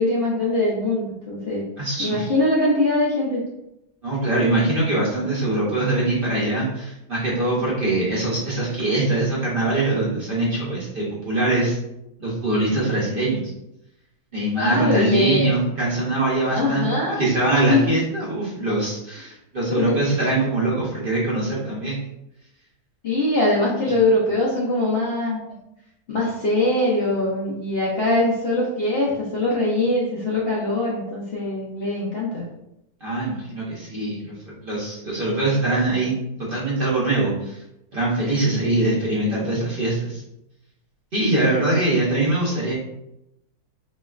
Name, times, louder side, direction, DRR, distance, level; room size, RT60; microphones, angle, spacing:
voice 1, 0.0-1.6 2.0-3.4 14.6-15.5 16.5-17.2 17.7-17.9 19.7-20.0 23.0-25.4 26.1-32.4 38.3-38.6 41.3-41.4, left 2 dB, 55° left, -6 dB, 0.7 m, -22 dB
voice 2, 1.8-2.3 4.0-11.8 12.2-13.5 14.3-22.0 33.0-37.6 37.9-40.2 41.1-42.7, right 2 dB, 45° right, -6 dB, 0.8 m, -23 dB
3.2 x 3.1 x 2.3 m, 0.86 s
omnidirectional pair, 1.7 m